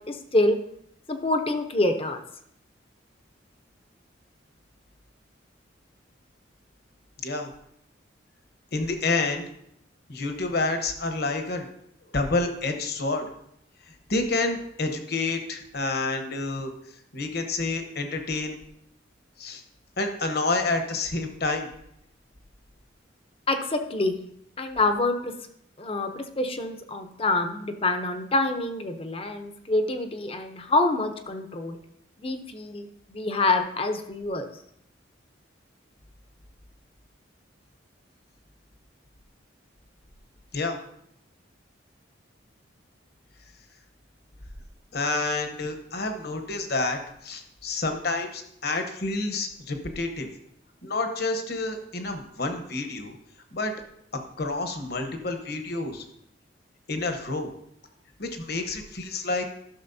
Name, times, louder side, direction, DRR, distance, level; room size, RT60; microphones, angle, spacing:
voice 1, 0.1-0.6 1.1-2.2 23.5-24.2 24.6-25.3 25.8-31.8 32.2-34.5, left 2 dB, 30° left, 7 dB, 0.6 m, -26 dB
voice 2, 8.7-9.4 10.1-11.7 12.1-13.3 14.1-16.7 17.1-18.6 19.4-19.6 20.0-21.7 40.5-40.8 44.9-50.3 50.8-53.1 53.5-53.7 54.4-56.0 56.9-57.5 58.2-59.4, left 3 dB, 55° left, 5 dB, 1.0 m, -28 dB
13.0 x 6.3 x 2.7 m, 0.72 s
head